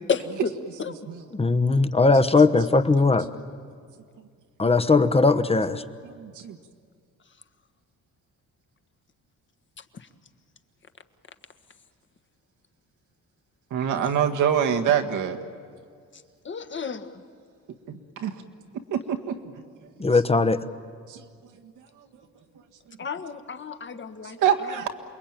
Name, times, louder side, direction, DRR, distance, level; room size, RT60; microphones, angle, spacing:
voice 1, 0.1-0.5 0.8-0.9 9.9-10.1 13.8-13.9 16.4-17.2 23.0-24.9, left 6 dB, 40° left, 8 dB, 1.5 m, -32 dB
voice 2, 1.4-3.3 4.6-5.8 20.0-20.6, left 3 dB, 20° left, 11 dB, 1.0 m, -19 dB
voice 3, 6.0-6.6 13.7-15.4 17.9-18.4 18.9-19.6 20.0-20.1 21.1-21.2 22.0-22.1 22.9-23.0 24.2-24.9, right 8 dB, 80° right, 6 dB, 1.8 m, -26 dB
28.5 x 21.5 x 9.1 m, 2.1 s
cardioid pair, 90°, 30 cm